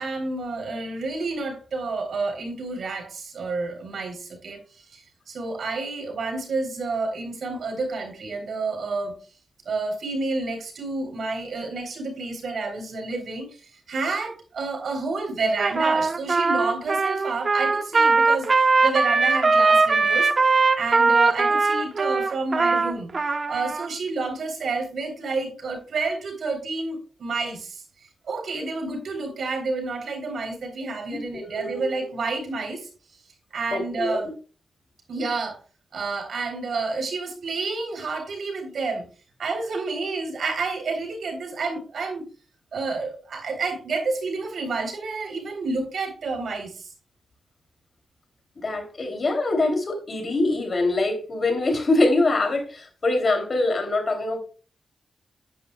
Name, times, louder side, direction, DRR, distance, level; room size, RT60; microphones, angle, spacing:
voice 1, 0.0-9.2 9.7-23.1 23.5-27.8 28.2-32.9 33.5-34.3 35.1-35.6 35.9-39.0 39.4-42.3 42.7-46.9, right 3 dB, 75° right, 3.7 m, -29 dB
Trumpet, 15.6-23.9, right 4 dB, 45° right, 0.9 m, -20 dB
voice 2, 31.3-31.8 33.7-34.2 48.6-54.4, left 2 dB, 50° left, 3.1 m, -24 dB
10.0 x 10.0 x 2.3 m
cardioid pair, 65°, 0 cm